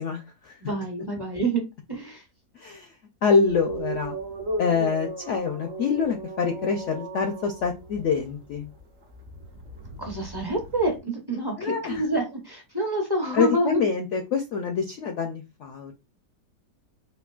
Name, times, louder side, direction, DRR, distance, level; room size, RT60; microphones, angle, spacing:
voice 1, 0.0-0.6 2.5-2.9 3.2-4.2 4.6-8.7 11.6-12.0 13.3-15.9, left 5 dB, 70° left, 4 dB, 0.7 m, -26 dB
voice 2, 0.6-1.6 1.9-2.2 10.0-13.8, right 2 dB, 25° right, 1 dB, 0.5 m, -27 dB
sound 1, 3.4-11.0, right 2 dB, 55° right, 0.8 m, -37 dB
4.4 x 2.7 x 2.3 m, 0.25 s
omnidirectional pair, 1.8 m